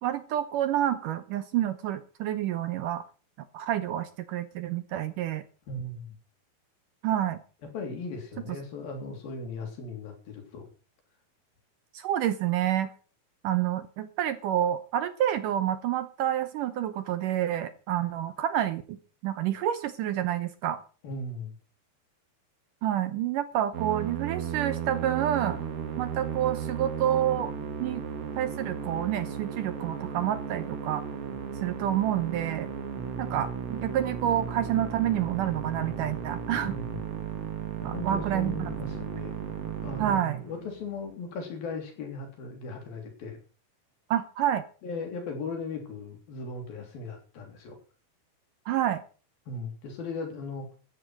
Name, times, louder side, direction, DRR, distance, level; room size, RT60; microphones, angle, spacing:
voice 1, 0.0-3.1 3.5-5.4 7.0-7.4 11.9-12.9 13.4-19.0 19.2-20.8 22.8-25.6 26.0-27.5 27.8-28.0 28.4-31.0 31.6-32.7 33.2-36.8 37.8-38.7 40.0-40.4 44.1-44.6 48.7-49.0, right 11 dB, 70° right, 12 dB, 2.1 m, -28 dB
voice 2, 5.7-6.1 7.7-10.7 21.0-21.5 36.6-37.0 37.8-39.3 39.8-43.4 44.8-47.8 49.5-50.8, left 3 dB, 70° left, 4 dB, 5.0 m, -37 dB
Musical instrument, 23.7-40.9, right 7 dB, 50° right, 2.4 m, -35 dB
14.0 x 9.7 x 6.0 m, 0.38 s
omnidirectional pair, 4.4 m